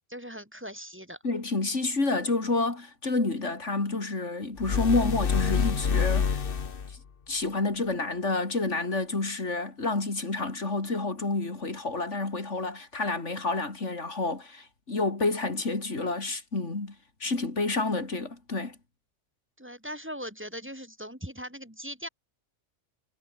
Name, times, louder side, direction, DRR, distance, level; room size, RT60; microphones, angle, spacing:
voice 1, 0.1-1.2 19.6-22.1, equal, 10° right, 3.7 m, -40 dB
voice 2, 1.2-6.4 6.9-7.0 7.3-17.0 17.2-18.8, left 3 dB, 90° left, 3.8 m, -29 dB
sound 1, 4.6-7.0, left 6 dB, 55° left, 1.3 m, -27 dB
omnidirectional pair, 1.2 m